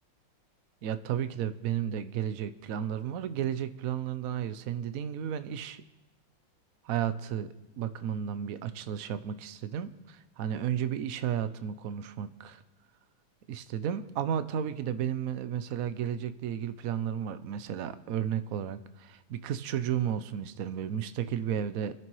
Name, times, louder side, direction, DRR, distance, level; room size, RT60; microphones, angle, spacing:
voice 1, 0.8-5.8 6.8-7.5 7.8-12.6 13.5-21.9, right 9 dB, 65° right, 12 dB, 0.9 m, -33 dB
25.0 x 10.5 x 3.1 m, 1.0 s
omnidirectional pair, 2.1 m